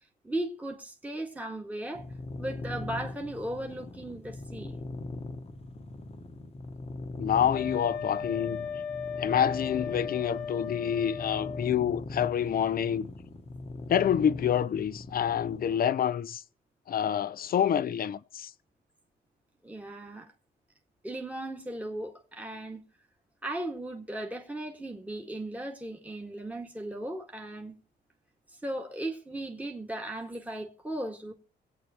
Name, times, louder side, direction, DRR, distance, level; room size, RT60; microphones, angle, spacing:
voice 1, 0.2-2.0 2.4-4.8 19.6-20.3 21.0-22.8 23.4-27.8 28.5-31.3, right 1 dB, 5° right, 1.9 m, -37 dB
sound 1, 2.0-15.8, left 2 dB, 30° left, 1.2 m, -41 dB
voice 2, 7.2-8.6 9.2-13.1 13.9-16.4 16.9-18.5, left 9 dB, 50° left, 0.6 m, -27 dB
Wind instrument woodwind instrument, 7.5-11.8, left 6 dB, 85° left, 0.9 m, -36 dB
24.5 x 8.5 x 2.9 m
cardioid pair, 90°, 20 cm